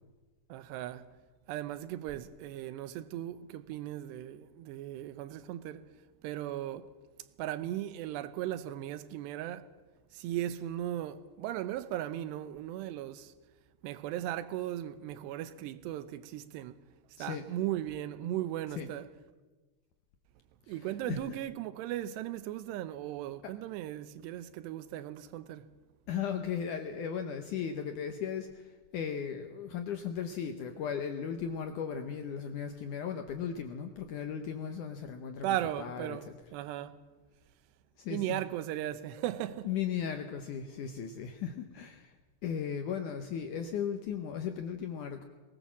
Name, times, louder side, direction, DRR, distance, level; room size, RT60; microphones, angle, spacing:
voice 1, 0.5-1.1 1.5-5.8 6.2-6.9 7.4-9.7 10.1-13.3 13.8-16.8 17.2-19.1 20.7-25.6 35.4-37.0 38.1-39.7, right 13 dB, 85° right, 3.0 m, -37 dB
voice 2, 26.1-36.2 38.0-38.4 39.6-42.1 42.4-45.2, left 7 dB, 75° left, 1.9 m, -36 dB
20.5 x 19.0 x 7.3 m
omnidirectional pair, 4.8 m